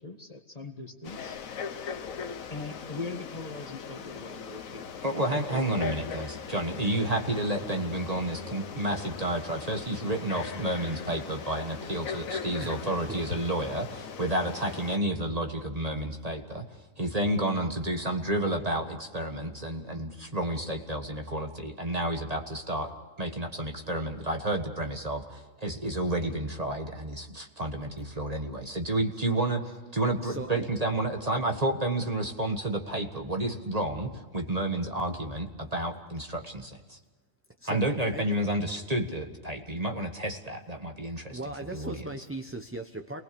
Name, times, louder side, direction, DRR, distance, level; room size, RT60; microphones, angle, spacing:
voice 1, 0.0-1.4 2.5-5.4, left 3 dB, 30° left, 4 dB, 1.7 m, -40 dB
Frog, 1.0-15.0, left 6 dB, 80° left, 1.4 m, -39 dB
voice 2, 5.0-16.6 17.0-22.9 23.2-37.0 37.7-42.0, right 1 dB, 30° right, 4 dB, 1.7 m, -30 dB
voice 3, 12.6-13.1 28.1-28.3 30.2-30.7 37.6-38.3 41.3-43.2, right 2 dB, 10° right, 5 dB, 0.8 m, -39 dB
28.5 x 20.0 x 7.0 m, 1.3 s
omnidirectional pair, 1.4 m